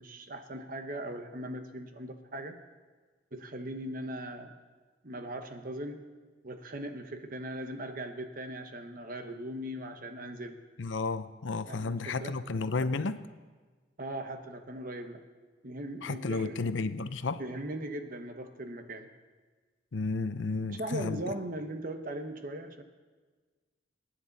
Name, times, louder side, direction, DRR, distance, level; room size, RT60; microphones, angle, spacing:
voice 1, 0.0-2.6 3.3-4.5 5.0-6.1 6.4-10.6 11.7-12.3 14.0-15.2 15.6-16.6 17.4-19.1 20.7-22.8, right 1 dB, 50° right, 6 dB, 1.1 m, -39 dB
voice 2, 10.8-13.3 16.0-17.4 19.9-21.2, left 3 dB, 85° left, 12 dB, 0.7 m, -32 dB
23.5 x 9.8 x 4.1 m, 1.4 s
head